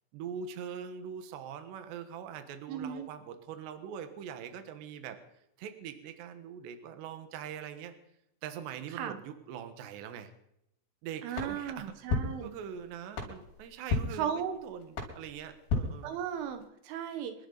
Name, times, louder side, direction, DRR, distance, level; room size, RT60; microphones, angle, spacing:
voice 1, 0.1-5.2 5.6-7.9 8.4-10.3 11.0-12.1 12.4-16.2, right 8 dB, 70° right, 8 dB, 3.4 m, -43 dB
voice 2, 2.7-3.1 9.0-9.2 11.2-12.5 14.2-14.5 16.0-17.3, right 8 dB, 90° right, 7 dB, 3.9 m, -36 dB
sound 1, 11.3-16.7, left 3 dB, 75° left, 6.8 m, -36 dB
27.5 x 12.0 x 4.0 m, 0.79 s
omnidirectional pair, 5.4 m